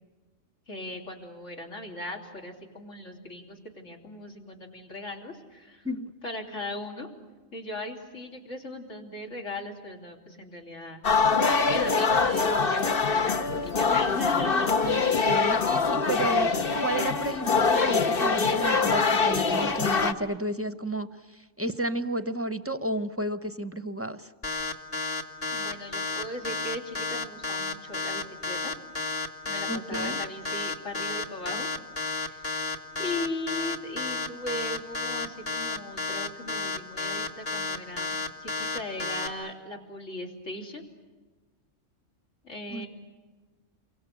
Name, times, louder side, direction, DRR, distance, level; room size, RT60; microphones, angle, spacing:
voice 1, 0.7-5.8 6.2-7.1 7.5-11.4 11.7-13.4 13.6-14.8 25.5-28.7 29.5-31.7 32.2-32.6 33.0-40.8 42.4-42.9, left 2 dB, 70° left, 0 dB, 3.7 m, -38 dB
sound 1, 11.0-20.1, left 4 dB, 45° left, 1.2 m, -24 dB
voice 2, 14.8-24.3 29.7-30.2 42.7-42.8, right 1 dB, 15° right, 11 dB, 0.7 m, -32 dB
sound 2, 24.4-39.3, left 3 dB, 30° left, 1.9 m, -31 dB
29.5 x 23.5 x 8.3 m, 1.3 s
omnidirectional pair, 1.3 m